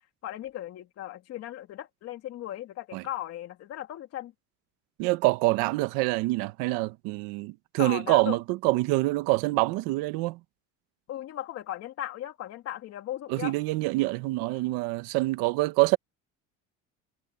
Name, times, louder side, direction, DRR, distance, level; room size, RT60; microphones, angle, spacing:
voice 1, 0.2-4.3 7.8-8.4 11.1-13.5 14.5-14.6, left 13 dB, 45° left, 2.6 m, -37 dB
voice 2, 5.0-10.4 13.3-16.0, right 21 dB, 90° right, 1.2 m, -26 dB
cardioid pair, 175°, 34 cm